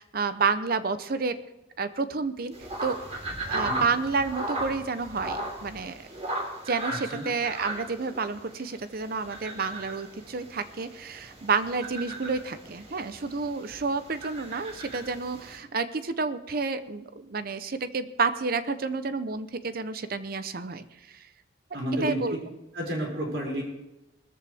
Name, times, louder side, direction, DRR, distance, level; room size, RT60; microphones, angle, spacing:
voice 1, 0.0-1.3 1.8-2.5 2.8-3.0 3.5-6.1 6.7-20.8 22.0-22.4, right 4 dB, 55° right, 12 dB, 0.7 m, -30 dB
sound 1, 2.5-15.6, right 1 dB, 40° right, 3.9 m, -37 dB
voice 2, 6.9-7.2 21.7-22.4 22.7-23.6, right 1 dB, 80° right, -2 dB, 6.1 m, -31 dB
19.5 x 14.0 x 3.5 m, 0.96 s
head